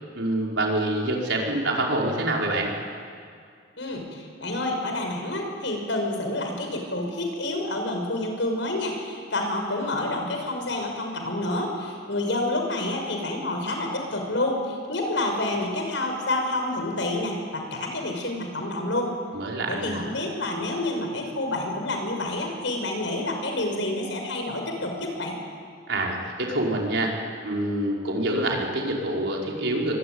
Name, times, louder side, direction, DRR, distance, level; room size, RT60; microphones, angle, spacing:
voice 1, 0.1-2.7 19.3-20.1 25.9-30.0, right 1 dB, 75° right, -1 dB, 5.2 m, -26 dB
voice 2, 3.8-19.1 19.7-25.3, left 2 dB, 80° left, 3 dB, 5.8 m, -28 dB
24.0 x 23.0 x 9.8 m, 2.2 s
head